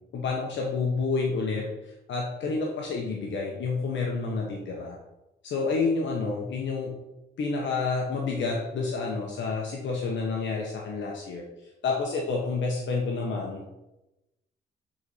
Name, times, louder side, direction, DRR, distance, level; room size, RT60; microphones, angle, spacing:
voice 1, 0.1-1.6 2.1-5.0 5.4-6.9 7.4-11.4 11.8-13.6, left 4 dB, 70° left, -1 dB, 1.2 m, -29 dB
7.6 x 4.3 x 5.0 m, 0.97 s
cardioid pair, 90°, 20 cm